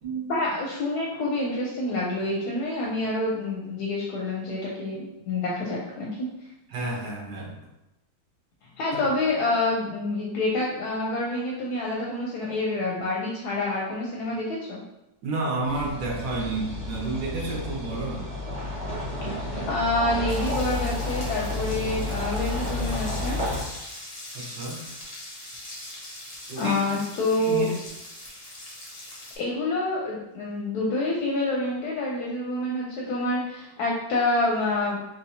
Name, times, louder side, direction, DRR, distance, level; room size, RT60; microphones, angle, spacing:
voice 1, 0.3-6.3 8.8-14.8 19.7-23.4 26.6-27.7 29.4-35.0, left 2 dB, 80° left, -4 dB, 1.1 m, -27 dB
voice 2, 6.7-7.6 15.2-18.3 24.3-24.8 26.5-26.8 27.4-27.8, right 2 dB, 90° right, -2 dB, 1.5 m, -30 dB
sound 1, 15.7-23.6, left 2 dB, 25° right, 1.2 m, -31 dB
sound 2, 20.3-29.4, left 1 dB, 35° left, 0.6 m, -42 dB
3.6 x 2.8 x 2.8 m, 0.88 s
omnidirectional pair, 1.7 m